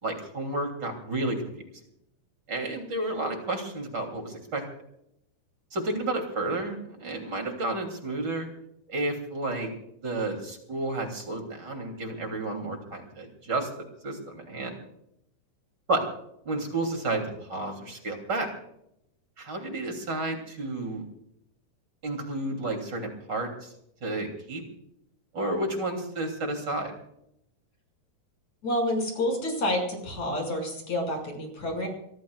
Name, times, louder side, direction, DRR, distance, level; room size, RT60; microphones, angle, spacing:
voice 1, 0.0-1.4 2.5-4.6 5.7-8.5 8.9-9.7 10.0-14.7 15.9-16.0 16.4-18.5 19.4-21.0 22.0-23.7 24.0-24.6 25.3-26.9, right 2 dB, 30° right, 4 dB, 3.3 m, -31 dB
voice 2, 28.6-31.9, left 1 dB, 50° left, 1 dB, 7.4 m, -29 dB
24.5 x 21.5 x 2.4 m, 0.76 s
omnidirectional pair, 4.2 m